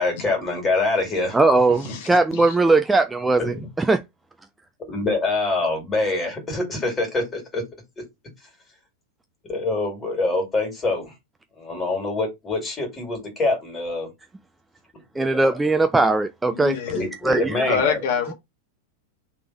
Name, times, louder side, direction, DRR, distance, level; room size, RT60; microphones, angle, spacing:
voice 1, 0.0-1.4 1.8-1.9 3.4-3.7 4.9-7.6 9.5-11.1 11.6-14.1 15.2-15.6 16.9-18.0, left 2 dB, 20° left, 2.2 m, -25 dB
voice 2, 1.3-4.0 15.2-16.8 17.2-17.7, right 3 dB, 10° right, 0.3 m, -19 dB
voice 3, 16.5-17.0 17.7-18.3, left 6 dB, 50° left, 1.1 m, -25 dB
3.4 x 3.3 x 4.3 m
figure-of-eight pair, 90°, 0 cm